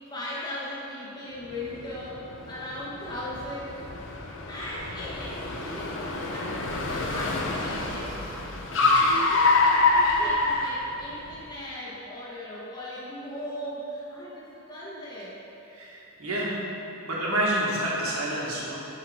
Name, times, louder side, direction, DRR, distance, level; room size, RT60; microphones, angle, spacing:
voice 1, 0.0-4.0 4.5-6.0 6.3-8.2 8.9-15.3, equal, 20° left, -8 dB, 1.4 m, -38 dB
Car, 1.5-11.4, left 3 dB, 60° left, 0.7 m, -26 dB
voice 2, 8.7-9.0 15.7-16.5 17.0-18.9, right 1 dB, 85° right, -6 dB, 1.6 m, -29 dB
8.3 x 3.9 x 5.0 m, 2.9 s
head